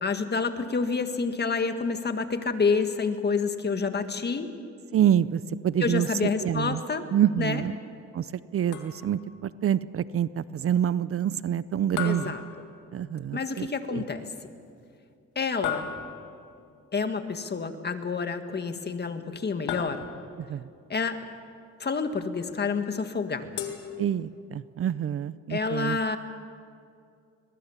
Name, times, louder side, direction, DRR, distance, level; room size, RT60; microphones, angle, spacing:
voice 1, 0.0-4.5 5.8-7.0 7.4-7.6 12.0-12.4 13.3-14.3 15.4-15.9 16.9-20.0 20.9-21.2 21.8-23.6 25.5-26.2, left 4 dB, 35° left, 8 dB, 1.8 m, -28 dB
voice 2, 4.9-6.1 6.4-6.8 7.1-7.8 8.1-12.3 12.9-14.0 20.4-20.7 24.0-26.0, right 10 dB, 50° right, 17 dB, 0.6 m, -27 dB
sound 1, 8.7-9.3 12.0-13.2 15.6-16.5 19.7-20.5 23.6-24.6, left 9 dB, 90° left, 2.2 m, -36 dB
22.0 x 21.0 x 7.3 m, 2.4 s
cardioid pair, 90°, 30 cm